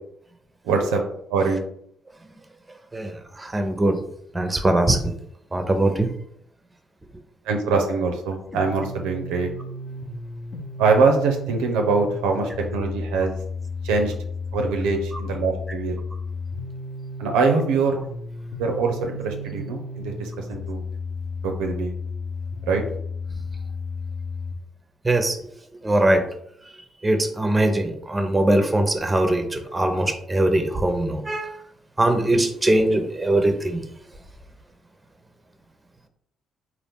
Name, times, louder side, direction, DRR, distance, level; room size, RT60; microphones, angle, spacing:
voice 1, 0.6-1.0 1.3-1.6 7.5-9.5 10.8-13.3 13.8-14.1 14.5-15.9 17.2-18.0 18.6-20.8 21.4-21.9 22.7-22.8, right 4 dB, 70° right, 3 dB, 0.5 m, -23 dB
voice 2, 2.9-4.0 4.3-5.1 5.5-6.1 25.0-25.4 25.8-26.3 27.0-31.5 32.0-33.8, right 1 dB, 20° right, 7 dB, 0.7 m, -21 dB
sound 1, 8.5-24.5, left 3 dB, 40° left, 0.8 m, -33 dB
3.9 x 2.5 x 3.5 m, 0.70 s
figure-of-eight pair, 40°, 0 cm